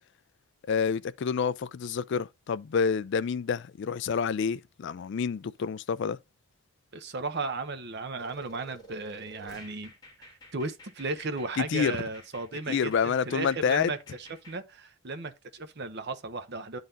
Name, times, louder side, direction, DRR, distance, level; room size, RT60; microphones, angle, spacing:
voice 1, 0.7-6.2 11.6-12.0 12.7-13.9, left 6 dB, 55° left, 0.3 m, -28 dB
voice 2, 6.9-9.9 10.2-16.8, right 3 dB, 50° right, 0.8 m, -35 dB
sound 1, 8.2-14.6, equal, 20° left, 1.8 m, -51 dB
10.5 x 4.0 x 2.5 m
head